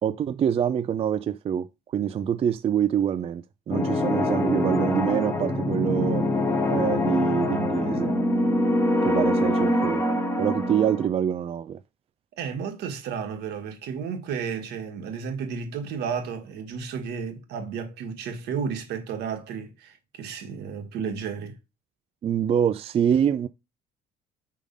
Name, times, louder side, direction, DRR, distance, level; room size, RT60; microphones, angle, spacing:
voice 1, 0.0-6.2 6.7-8.1 9.0-10.0 10.4-11.8 22.2-23.5, right 9 dB, 35° right, 0.4 m, -25 dB
sound 1, 3.7-11.1, left 1 dB, 15° left, 1.3 m, -24 dB
voice 2, 12.4-21.6, right 6 dB, 80° right, 1.5 m, -32 dB
4.8 x 3.7 x 5.3 m
cardioid pair, 110°, 17 cm